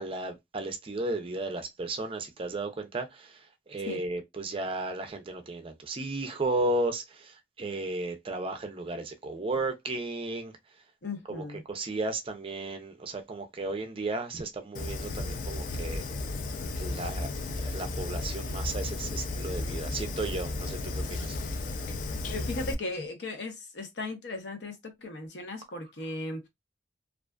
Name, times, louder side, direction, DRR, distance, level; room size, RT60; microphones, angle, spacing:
voice 1, 0.0-3.4 3.7-10.5 11.3-16.0 16.8-17.3 17.6-21.4, right 2 dB, 30° right, 0.4 m, -34 dB
voice 2, 11.0-11.6 21.9-22.0 22.3-26.5, left 2 dB, 75° left, 0.8 m, -37 dB
Fire, 14.7-22.7, left 2 dB, 50° left, 0.3 m, -34 dB
2.4 x 2.3 x 2.2 m
head